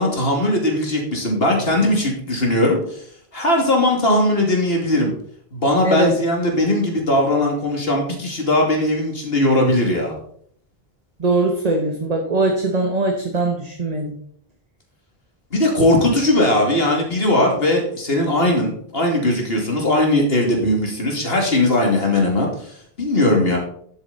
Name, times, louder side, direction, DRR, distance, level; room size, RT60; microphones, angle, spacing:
voice 1, 0.0-3.0 3.3-5.1 5.5-10.1 15.5-23.6, left 1 dB, 70° left, 0 dB, 2.8 m, -19 dB
voice 2, 11.2-14.1, right 2 dB, 40° right, 2 dB, 1.4 m, -21 dB
12.0 x 8.2 x 4.1 m, 0.63 s
omnidirectional pair, 1.0 m